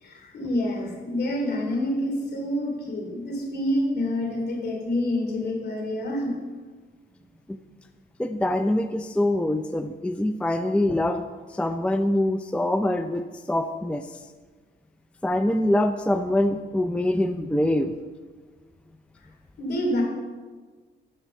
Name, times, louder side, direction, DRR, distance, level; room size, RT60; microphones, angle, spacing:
voice 1, 0.0-6.4 19.6-20.0, left 1 dB, 55° left, 0 dB, 2.9 m, -27 dB
voice 2, 8.2-14.3 15.2-18.0, left 1 dB, 5° left, 8 dB, 0.4 m, -24 dB
12.0 x 4.5 x 6.7 m, 1.4 s
cardioid pair, 90°, 20 cm